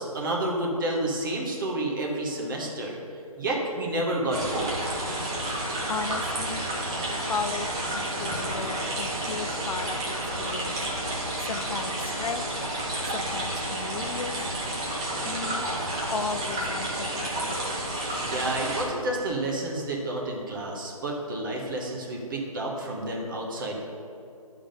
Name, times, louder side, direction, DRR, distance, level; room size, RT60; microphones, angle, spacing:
voice 1, 0.0-3.0 3.4-4.8 18.0-23.9, right 1 dB, 35° right, -2 dB, 1.2 m, -30 dB
sound 1, 4.3-18.8, right 1 dB, 10° right, 0.4 m, -30 dB
voice 2, 5.9-6.7 7.2-10.8 11.4-12.4 13.1-14.5 15.2-15.7 16.1-17.6, left 5 dB, 70° left, 10 dB, 0.5 m, -35 dB
10.0 x 3.7 x 5.1 m, 2.6 s
figure-of-eight pair, 155°, 19 cm